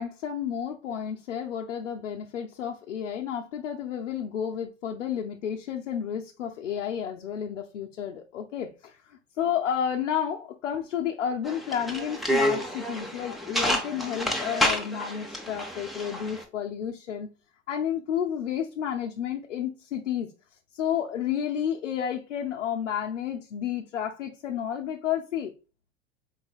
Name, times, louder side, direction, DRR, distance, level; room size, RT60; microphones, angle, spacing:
voice 1, 0.0-17.3 17.7-20.3 20.7-25.5, left 9 dB, 75° left, 0.6 m, -31 dB
sound 1, 11.4-16.4, equal, ahead, 0.7 m, -29 dB
4.0 x 4.0 x 2.4 m
figure-of-eight pair, 90°, 37 cm